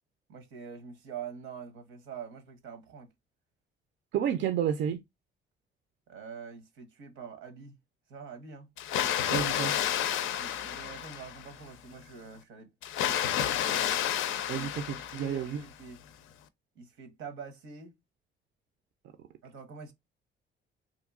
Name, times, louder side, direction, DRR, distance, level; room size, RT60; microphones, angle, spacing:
voice 1, 0.3-3.1 6.1-7.8 8.1-8.7 10.4-12.7 13.0-14.0 14.5-14.7 15.1-16.0 16.7-17.9 19.4-19.9, right 6 dB, 90° right, 0.9 m, -45 dB
voice 2, 4.1-5.0 9.3-9.7 14.5-15.6, right 9 dB, 70° right, 0.4 m, -30 dB
Water, 8.8-11.6 12.8-15.6, left 10 dB, 85° left, 0.4 m, -30 dB
2.9 x 2.6 x 2.3 m
cardioid pair, 90°, 20 cm